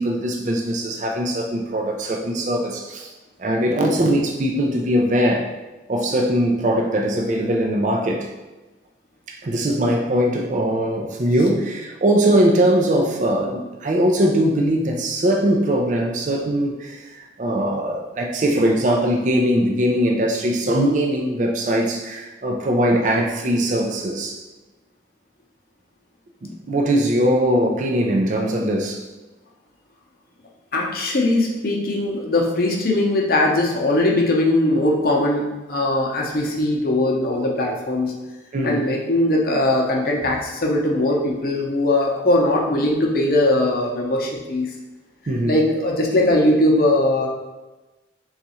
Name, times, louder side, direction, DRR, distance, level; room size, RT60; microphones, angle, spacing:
voice 1, 0.0-3.1 3.4-5.5 5.9-8.3 9.3-24.4 26.4-29.0 38.5-38.9 45.3-45.5, right 1 dB, 40° right, 1 dB, 0.4 m, -21 dB
voice 2, 30.7-38.1 38.6-44.7 45.5-47.3, left 1 dB, 50° left, -1 dB, 0.7 m, -20 dB
3.9 x 2.4 x 4.2 m, 1.1 s
head